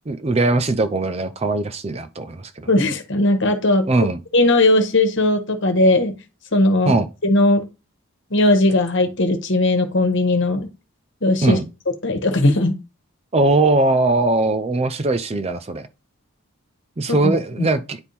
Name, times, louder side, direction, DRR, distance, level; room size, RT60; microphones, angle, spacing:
voice 1, 0.1-2.7 3.9-4.2 6.9-7.1 11.4-11.6 13.3-15.9 17.0-18.0, right 2 dB, 25° right, 0.5 m, -20 dB
voice 2, 2.7-3.8 4.3-6.1 6.5-6.9 7.2-7.6 8.3-10.7 11.2-11.6 12.0-12.7 17.1-17.3 17.6-17.7, left 2 dB, 55° left, 1.4 m, -18 dB
9.7 x 3.6 x 4.2 m
head